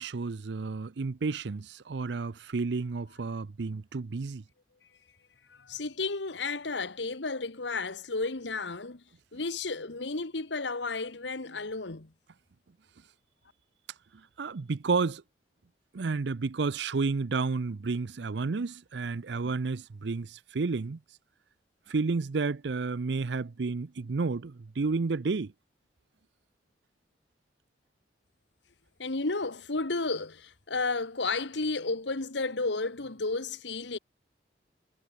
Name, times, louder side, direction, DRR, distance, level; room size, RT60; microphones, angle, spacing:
voice 1, 0.0-4.4 14.4-15.2 15.9-21.0 21.9-25.5, right 4 dB, 75° right, 0.6 m, -31 dB
voice 2, 5.5-9.0 9.3-12.1 29.0-34.0, left 3 dB, 80° left, 1.6 m, -32 dB
head